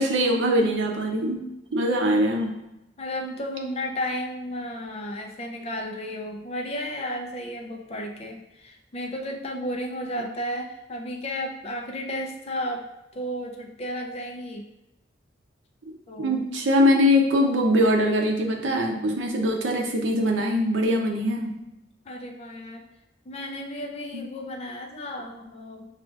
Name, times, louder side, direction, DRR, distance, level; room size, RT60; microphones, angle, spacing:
voice 1, 0.0-1.4 1.7-2.5 16.2-21.5 24.1-24.3, equal, 85° right, 1 dB, 0.7 m, -22 dB
voice 2, 3.0-12.8 13.1-14.6 16.1-16.4 22.1-22.8 23.2-25.9, equal, 35° left, 2 dB, 0.5 m, -33 dB
5.9 x 2.4 x 2.4 m, 0.93 s
head